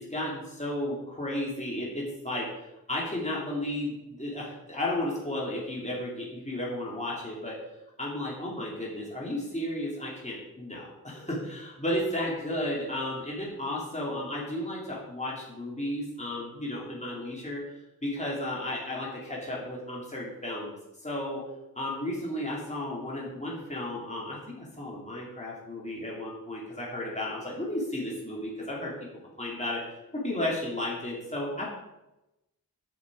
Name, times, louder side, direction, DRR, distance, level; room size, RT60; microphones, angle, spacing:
voice 1, 0.1-2.5 2.9-7.6 8.0-17.6 18.0-20.7 21.0-21.4 21.8-28.9 29.4-29.8 30.1-31.7, left 1 dB, 20° left, -5 dB, 2.8 m, -33 dB
8.8 x 6.6 x 4.9 m, 0.94 s
wide cardioid pair, 50°, 38 cm